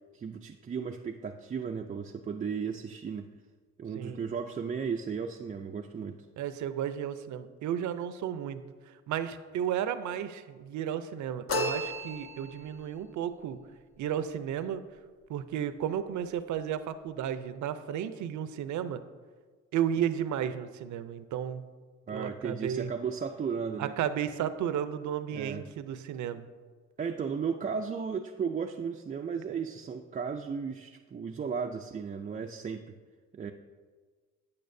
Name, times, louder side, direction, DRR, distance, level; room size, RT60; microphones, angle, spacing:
voice 1, 0.1-3.3 3.8-6.3 22.1-23.9 25.3-25.6 27.0-33.0 33.3-33.5, right 6 dB, 25° right, 3 dB, 0.4 m, -35 dB
voice 2, 6.4-13.6 14.0-14.8 15.3-19.0 19.7-21.7 22.1-22.9 23.8-26.5, right 9 dB, 75° right, 12 dB, 0.6 m, -33 dB
sound 1, 11.5-12.7, left 1 dB, 45° left, 1.1 m, -33 dB
8.6 x 8.5 x 2.6 m, 1.5 s
cardioid pair, 90°, 30 cm